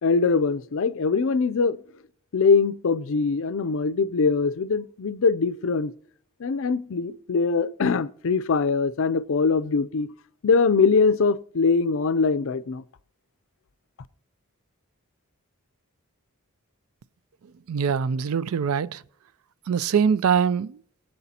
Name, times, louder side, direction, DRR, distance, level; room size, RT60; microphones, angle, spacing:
voice 1, 0.0-1.8 2.3-5.9 6.4-10.1 10.4-12.8, left 4 dB, 60° left, 0.5 m, -22 dB
voice 2, 17.7-19.0 19.7-20.8, right 7 dB, 70° right, 0.4 m, -23 dB
22.5 x 7.9 x 2.8 m
head